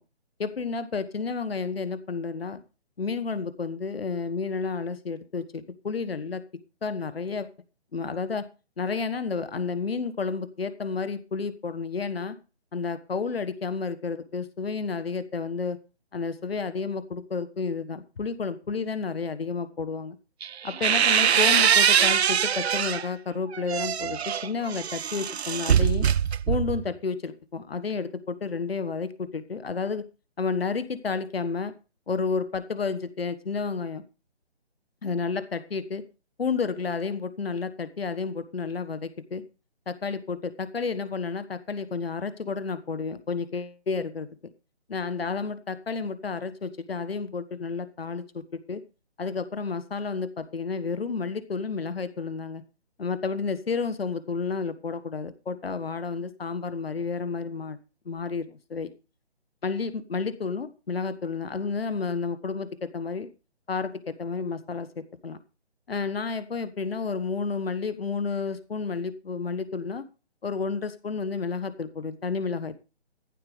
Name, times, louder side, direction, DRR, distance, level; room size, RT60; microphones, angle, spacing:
voice 1, 0.4-2.6 3.0-6.4 6.8-7.5 7.9-8.5 8.8-12.4 12.7-15.8 16.1-20.2 20.6-26.1 26.5-30.0 30.4-31.7 32.1-34.0 35.0-36.0 36.4-39.4 39.9-44.3 44.9-48.8 49.2-52.6 53.0-57.8 58.0-58.9 59.6-63.3 63.7-65.4 65.9-70.0 70.4-72.8, left 5 dB, 60° left, 14 dB, 1.4 m, -31 dB
sound 1, 20.4-23.1 23.5-26.9, right 8 dB, 70° right, 0.5 m, -23 dB
15.0 x 7.6 x 5.0 m, 0.33 s
figure-of-eight pair, 150°, 33 cm